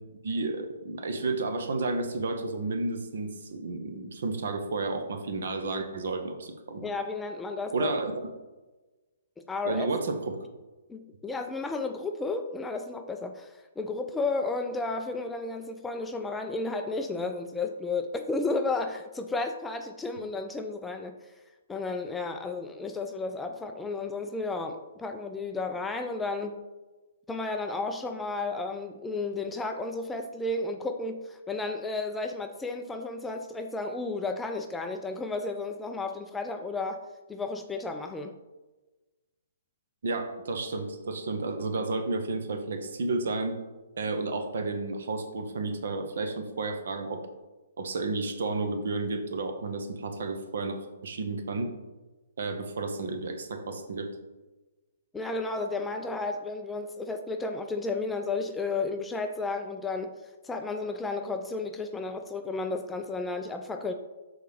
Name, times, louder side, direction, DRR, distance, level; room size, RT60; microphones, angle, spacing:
voice 1, 0.2-6.8 7.7-8.1 9.6-10.5 40.0-43.6 44.0-47.2 47.8-51.7 52.4-54.1, right 3 dB, 55° right, 6 dB, 0.9 m, -32 dB
voice 2, 6.8-7.9 9.5-9.9 10.9-21.1 21.7-26.6 27.3-37.0 37.3-38.3 55.1-60.1 60.4-63.9, left 3 dB, 10° left, 5 dB, 0.4 m, -33 dB
6.6 x 4.0 x 4.8 m, 1.2 s
figure-of-eight pair, 125°, 0 cm